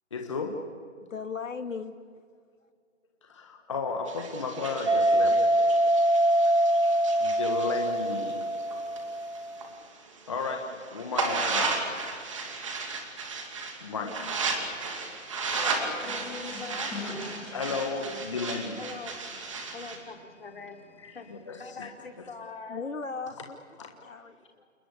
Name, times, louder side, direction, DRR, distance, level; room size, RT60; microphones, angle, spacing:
voice 1, 0.1-0.7 3.2-5.5 7.2-8.4 10.3-11.9 13.8-14.4 14.7-15.3 15.8-15.9 17.5-18.9 19.3-19.4 21.0-21.9 23.8-24.0, left 4 dB, 25° left, 3 dB, 1.4 m, -34 dB
voice 2, 1.0-1.9 6.4-6.5 22.7-23.6 24.0-24.4, left 5 dB, 80° left, 8 dB, 1.9 m, -36 dB
sound 1, 4.1-9.7 10.1-20.0, right 4 dB, 25° right, 2.6 m, -35 dB
sound 2, 4.8-9.6, right 1 dB, 60° right, 2.2 m, -24 dB
voice 3, 15.5-16.9 18.8-19.2 19.7-20.8 21.1-21.3 21.6-22.8, left 4 dB, 45° left, 3 dB, 3.3 m, -42 dB
sound 3, 15.7-22.2, left 2 dB, 5° left, 2.0 m, -45 dB
29.0 x 21.0 x 8.3 m, 2.1 s
hypercardioid pair, 170°, 39 cm